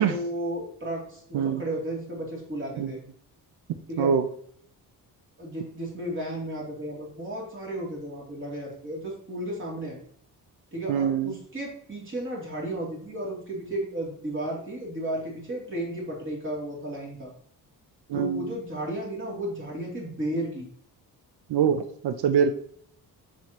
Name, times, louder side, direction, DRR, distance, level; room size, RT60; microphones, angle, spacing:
voice 1, 0.0-3.0 3.9-4.1 5.4-10.0 10.7-17.3 18.1-20.7, right 1 dB, 30° right, -3 dB, 2.9 m, -33 dB
voice 2, 10.9-11.3 18.1-18.5 21.5-22.5, right 7 dB, 90° right, 9 dB, 0.7 m, -24 dB
7.4 x 7.0 x 3.0 m, 0.63 s
wide cardioid pair, 160°, 38 cm